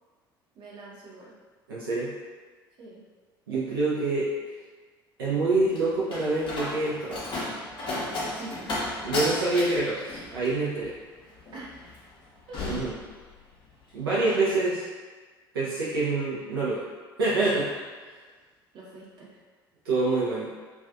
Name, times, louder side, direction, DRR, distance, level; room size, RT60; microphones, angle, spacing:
voice 1, 0.5-1.3 2.8-3.0 8.2-9.2 11.5-11.7 12.5-12.9 14.0-14.2 18.7-19.4, right 2 dB, 40° right, -5 dB, 0.7 m, -45 dB
voice 2, 1.7-2.1 3.5-4.3 5.2-7.3 9.0-10.9 12.7-12.9 13.9-14.9 15.5-16.8 17.2-17.7 18.1-18.2 19.8-20.5, right 3 dB, 75° right, -7 dB, 0.4 m, -26 dB
Slam, 5.2-13.7 14.0-14.5, left 2 dB, 40° left, 0.7 m, -34 dB
2.4 x 2.3 x 2.3 m, 1.4 s
figure-of-eight pair, 60°, 12 cm